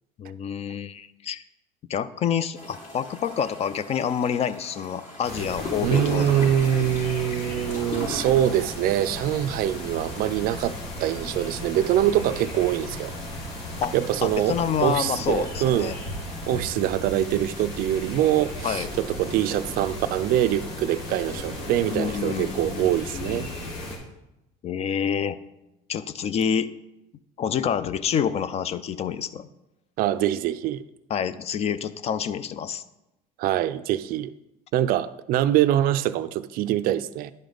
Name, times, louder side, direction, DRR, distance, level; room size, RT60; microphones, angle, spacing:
voice 1, 0.2-1.4 1.9-6.5 13.8-13.9 14.2-16.0 18.6-18.9 21.9-23.7 24.6-25.4 25.9-26.7 27.4-29.5 31.1-32.8, left 8 dB, 40° left, 0.4 m, -28 dB
sound 1, 2.5-16.6, left 1 dB, 55° left, 3.3 m, -40 dB
sound 2, 5.2-24.0, left 1 dB, 75° left, 2.0 m, -36 dB
voice 2, 5.8-10.7 11.0-13.1 13.9-15.9 16.5-23.5 30.0-30.8 33.4-34.3 34.7-37.3, right 12 dB, 60° right, 0.4 m, -24 dB
10.5 x 5.2 x 3.9 m
cardioid pair, 110°, 17 cm